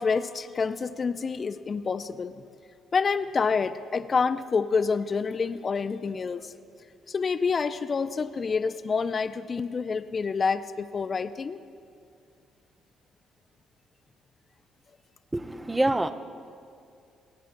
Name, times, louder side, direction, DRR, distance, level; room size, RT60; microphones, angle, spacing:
voice 1, 0.0-2.3 2.9-6.5 7.1-11.6, left 5 dB, 40° left, 12 dB, 0.4 m, -27 dB
voice 2, 15.3-16.1, right 1 dB, 20° right, 11 dB, 0.6 m, -25 dB
26.0 x 8.9 x 2.6 m, 2.4 s
hypercardioid pair, 45°, 0 cm